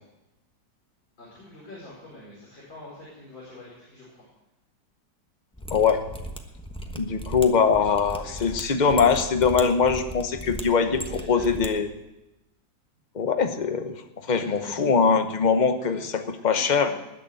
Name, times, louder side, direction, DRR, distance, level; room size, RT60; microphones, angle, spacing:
voice 1, 1.2-4.3 8.1-8.5 10.6-11.5 14.3-14.7 16.5-16.9, left 1 dB, 85° left, -7 dB, 5.5 m, -45 dB
Mechanisms, 5.5-11.7 11.9-12.0, right 1 dB, 5° left, 0.8 m, -37 dB
voice 2, 5.7-6.0 6.9-11.0 11.3-11.9 13.1-14.0 14.3-16.9, left 5 dB, 30° left, 8 dB, 0.8 m, -22 dB
20.0 x 6.8 x 7.7 m, 0.97 s
omnidirectional pair, 2.0 m